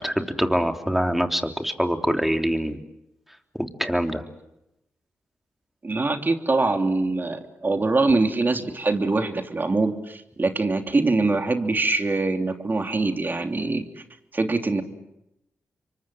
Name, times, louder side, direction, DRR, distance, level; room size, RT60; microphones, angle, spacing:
voice 1, 0.0-2.8 3.5-4.2, equal, 5° right, 5 dB, 3.4 m, -24 dB
voice 2, 5.8-13.8 14.3-14.8, right 3 dB, 35° right, 6 dB, 3.1 m, -23 dB
27.5 x 24.0 x 7.8 m, 0.86 s
supercardioid pair, 45°, 6 cm